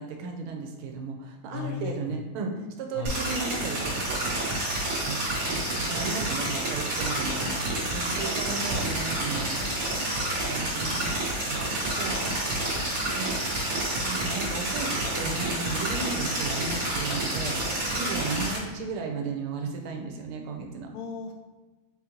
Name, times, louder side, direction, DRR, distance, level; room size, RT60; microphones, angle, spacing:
voice 1, 0.0-4.5 5.1-5.2 5.5-10.1 10.4-20.9, right 4 dB, 90° right, 2 dB, 1.5 m, -35 dB
voice 2, 1.5-2.2 2.9-3.1 20.9-21.3, left 7 dB, 85° left, 2 dB, 1.5 m, -35 dB
sound 1, 3.0-18.6, right 1 dB, 55° right, 1.1 m, -29 dB
4.0 x 3.7 x 2.9 m, 1.2 s
omnidirectional pair, 2.3 m